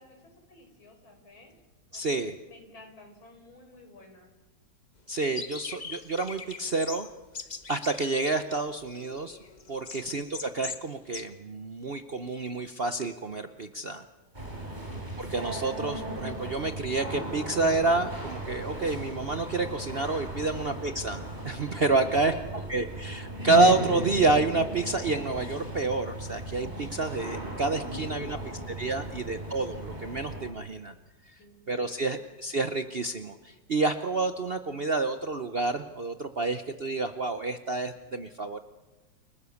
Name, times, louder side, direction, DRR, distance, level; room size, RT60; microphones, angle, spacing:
voice 1, 0.0-1.6 1.9-4.3 9.9-10.1 14.7-14.9 20.5-20.6 22.0-22.7 27.9-28.7 31.4-31.9, left 2 dB, 90° left, 4 dB, 5.5 m, -51 dB
voice 2, 1.9-2.3 5.1-7.1 7.7-9.4 9.7-14.0 15.2-22.3 22.7-28.4 28.8-30.9 31.7-38.6, right 3 dB, 50° right, 8 dB, 0.7 m, -28 dB
sound 1, 5.4-10.9 11.1-11.2, left 4 dB, 30° left, 0.9 m, -41 dB
sound 2, 14.3-30.5, right 1 dB, 20° right, 4.7 m, -36 dB
30.0 x 19.5 x 7.1 m, 1.1 s
omnidirectional pair, 2.1 m